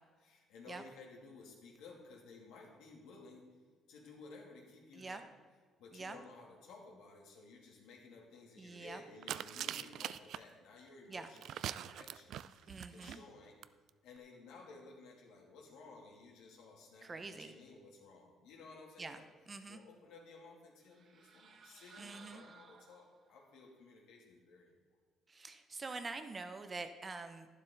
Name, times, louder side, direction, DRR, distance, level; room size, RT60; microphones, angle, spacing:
voice 1, 0.2-3.5 3.9-5.2 5.8-13.6 14.0-19.3 19.7-25.0, left 3 dB, 85° left, -1 dB, 2.7 m, -56 dB
voice 2, 8.6-9.0 11.1-11.3 12.7-13.2 17.0-17.5 19.0-19.2 19.5-19.8 22.0-22.4 25.3-27.5, right 3 dB, 20° right, 8 dB, 0.6 m, -45 dB
sound 1, 9.2-10.4 11.2-13.2 13.6-13.7 13.9-14.0, right 11 dB, 60° right, 0.3 m, -42 dB
sound 2, 20.8-23.4, right 5 dB, 40° right, 1.0 m, -59 dB
12.0 x 11.5 x 3.9 m, 1.5 s
cardioid pair, 160°, 0 cm